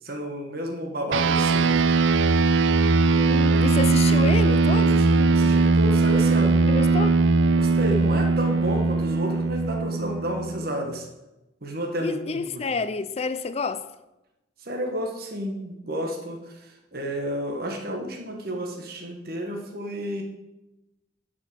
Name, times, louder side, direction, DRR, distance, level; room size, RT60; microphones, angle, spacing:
voice 1, 0.0-1.9 4.9-6.6 7.5-11.1 11.6-12.6 14.6-20.2, equal, 55° right, 1.4 m, -31 dB
sound 1, 1.1-10.9, right 3 dB, 85° right, 0.5 m, -20 dB
voice 2, 3.2-5.1 6.7-7.2 12.0-13.9, left 4 dB, 35° left, 0.4 m, -29 dB
10.5 x 5.4 x 6.4 m
head